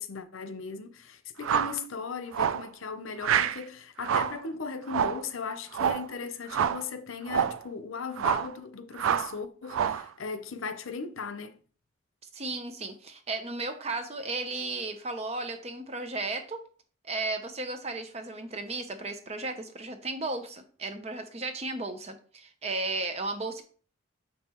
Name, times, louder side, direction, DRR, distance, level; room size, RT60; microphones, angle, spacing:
voice 1, 0.0-11.6, left 5 dB, 85° left, 0.7 m, -37 dB
sound 1, 1.4-1.8 2.3-2.7 3.2-3.6 4.0-4.4 4.9-5.2 5.7-6.1 6.5-6.8 7.3-7.6 8.2-8.5 9.0-9.3 9.7-10.1, right 8 dB, 90° right, 0.4 m, -27 dB
voice 2, 12.3-16.6 17.0-23.6, right 3 dB, 30° right, 0.7 m, -34 dB
6.5 x 5.5 x 3.0 m
head